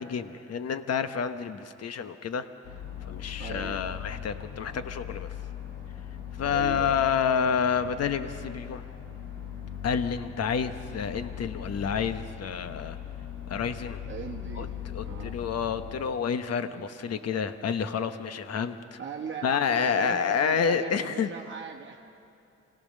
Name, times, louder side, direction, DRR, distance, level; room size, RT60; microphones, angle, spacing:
voice 1, 0.0-2.5 3.0-5.3 6.4-8.8 9.8-13.0 13.5-14.0 14.6-19.0 19.4-21.3, left 7 dB, 55° left, 10 dB, 1.1 m, -29 dB
sound 1, 2.6-15.9, left 9 dB, 85° left, 3.1 m, -39 dB
voice 2, 3.4-3.9 6.4-7.0 14.1-15.5 19.0-22.1, right 6 dB, 40° right, 0 dB, 1.3 m, -39 dB
26.5 x 17.0 x 6.5 m, 2.7 s
cardioid pair, 90°, 30 cm